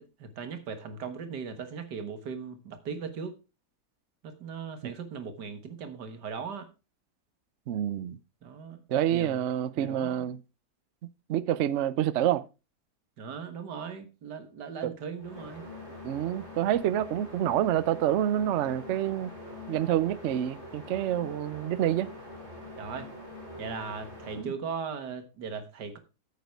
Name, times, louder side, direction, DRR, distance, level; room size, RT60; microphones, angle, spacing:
voice 1, 0.2-3.4 4.2-6.7 8.4-8.8 9.1-9.4 9.8-10.3 13.2-15.6 22.8-23.1 23.6-26.0, right 6 dB, 90° right, 2.0 m, -38 dB
voice 2, 7.7-8.2 8.9-10.4 11.3-12.4 14.8-14.9 16.0-19.3 19.7-22.1 24.4-24.5, right 11 dB, 60° right, 0.8 m, -27 dB
sound 1, 15.2-24.5, left 1 dB, 40° right, 3.7 m, -44 dB
9.3 x 8.1 x 4.6 m
omnidirectional pair, 1.7 m